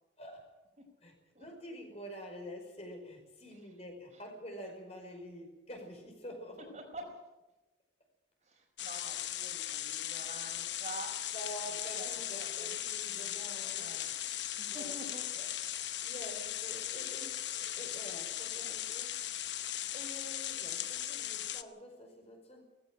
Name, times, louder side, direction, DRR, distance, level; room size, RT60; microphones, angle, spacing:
voice 1, 0.2-0.5 1.0-6.7 11.3-13.9 14.7-15.5 16.0-19.2 19.9-22.6, equal, 35° left, 2 dB, 5.2 m, -47 dB
voice 2, 6.6-7.1 8.4-11.1 11.9-12.1 12.4-12.7 13.8-14.1 14.6-15.3 18.6-18.8, right 1 dB, 40° right, 2 dB, 4.6 m, -47 dB
sound 1, 8.8-21.6, left 12 dB, 70° left, 0.9 m, -38 dB
18.5 x 16.0 x 9.1 m, 1.0 s
head